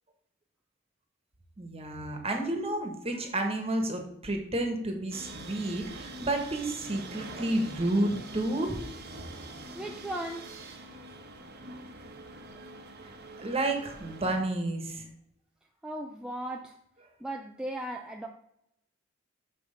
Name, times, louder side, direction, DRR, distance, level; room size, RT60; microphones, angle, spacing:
voice 1, 1.6-8.8 13.0-13.1 13.4-15.0, right 1 dB, 30° right, 4 dB, 1.5 m, -31 dB
sound 1, 5.1-14.4, right 2 dB, 50° right, 1.1 m, -44 dB
voice 2, 9.7-10.6 15.8-16.8 17.2-18.3, right 1 dB, 5° right, 1 dB, 0.5 m, -37 dB
6.6 x 6.3 x 5.3 m, 0.75 s
head